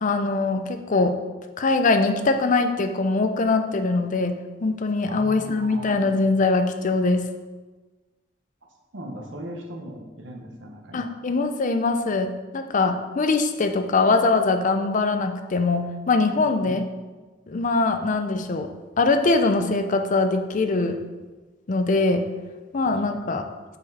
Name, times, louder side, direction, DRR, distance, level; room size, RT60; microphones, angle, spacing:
voice 1, 0.0-1.2 1.6-7.3 10.9-16.8 17.5-18.7 19.0-21.0 21.7-22.3 22.7-23.4, left 3 dB, 40° left, 7 dB, 0.5 m, -22 dB
voice 2, 5.1-5.9 8.9-11.2 16.4-16.8 23.1-23.3, right 1 dB, 65° right, 1 dB, 1.1 m, -39 dB
6.9 x 5.0 x 4.1 m, 1.3 s
head